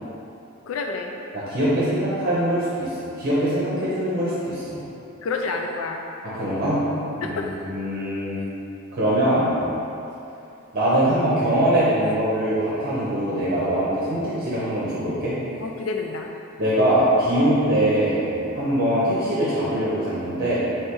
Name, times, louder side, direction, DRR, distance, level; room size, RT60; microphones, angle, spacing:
voice 1, 0.7-1.1 5.2-6.0 7.2-7.6 8.4-8.5 15.6-16.3, left 4 dB, 65° left, 2 dB, 0.3 m, -29 dB
voice 2, 1.3-4.8 6.2-6.8 7.2-8.4 8.9-9.6 10.7-15.3 16.6-20.6, right 1 dB, 45° right, -9 dB, 0.8 m, -22 dB
3.3 x 3.1 x 4.5 m, 2.9 s
head